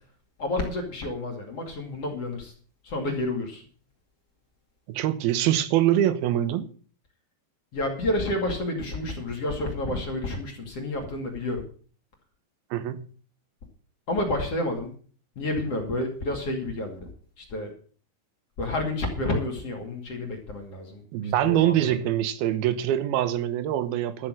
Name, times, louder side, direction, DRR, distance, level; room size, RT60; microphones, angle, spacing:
voice 1, 0.4-2.5 2.8-3.6 7.7-11.6 14.1-14.9 15.4-17.1 17.4-17.7 18.6-21.9, left 1 dB, 40° left, 2.8 m, -30 dB
voice 2, 4.9-6.7 12.7-13.1 21.1-24.3, right 12 dB, 70° right, 2.6 m, -24 dB
13.0 x 6.6 x 7.6 m
omnidirectional pair, 5.2 m